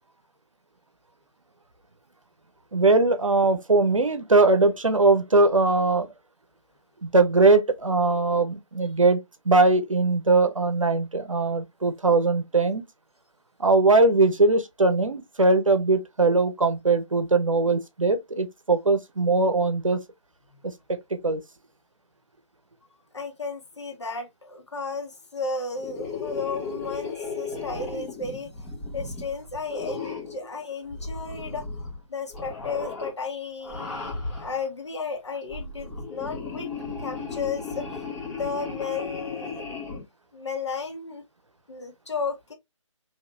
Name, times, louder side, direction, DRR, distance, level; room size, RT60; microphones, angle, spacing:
voice 1, 2.7-6.1 7.0-12.8 13.6-20.0 21.2-21.4, right 3 dB, 75° right, 0.9 m, -21 dB
voice 2, 23.1-28.5 28.9-31.6 32.1-36.7 37.0-40.0 40.3-41.2 41.7-42.5, left 4 dB, 60° left, 1.3 m, -34 dB
sound 1, 25.8-30.4 30.9-32.0 32.3-33.1 33.6-34.6 35.3-40.0, left 4 dB, 10° left, 1.2 m, -35 dB
3.9 x 2.8 x 2.5 m
figure-of-eight pair, 150°, 17 cm